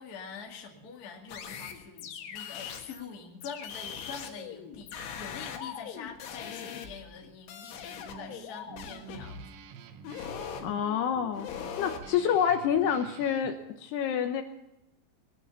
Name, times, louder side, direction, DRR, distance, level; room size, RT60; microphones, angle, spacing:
voice 1, 0.0-9.4, left 6 dB, 45° left, 1 dB, 1.1 m, -45 dB
sound 1, 1.3-3.0 3.4-7.2 7.5-9.4 10.0-10.7 11.3-12.1, left 7 dB, 90° left, 4.0 m, -41 dB
Guitar, 7.8-13.5, right 8 dB, 75° right, 3.0 m, -49 dB
voice 2, 10.6-11.5 11.8-14.4, left 8 dB, 75° left, 7 dB, 2.7 m, -28 dB
20.5 x 9.7 x 6.9 m, 0.91 s
omnidirectional pair, 5.4 m